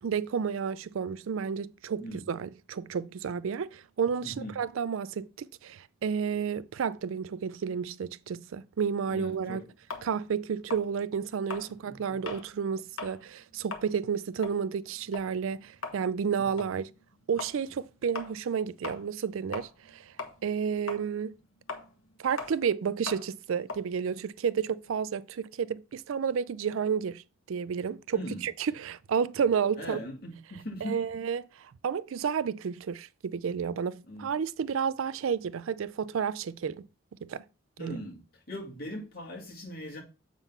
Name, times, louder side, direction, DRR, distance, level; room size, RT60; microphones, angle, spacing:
voice 1, 0.0-9.6 10.0-16.9 17.3-20.1 20.4-21.3 22.2-27.2 27.5-30.0 30.8-36.8 37.2-37.4 37.8-38.0, right 7 dB, 70° right, 0.4 m, -31 dB
voice 2, 4.2-4.6 9.1-9.7 11.9-12.2 16.4-16.5 28.1-28.4 29.8-31.0 34.1-34.3 37.8-38.2 38.5-40.0, equal, 45° left, 2.1 m, -40 dB
sound 1, 9.9-12.5 12.9-13.2 13.5-19.9 20.2-25.0, left 4 dB, 75° left, 1.2 m, -41 dB
7.1 x 3.7 x 5.5 m
head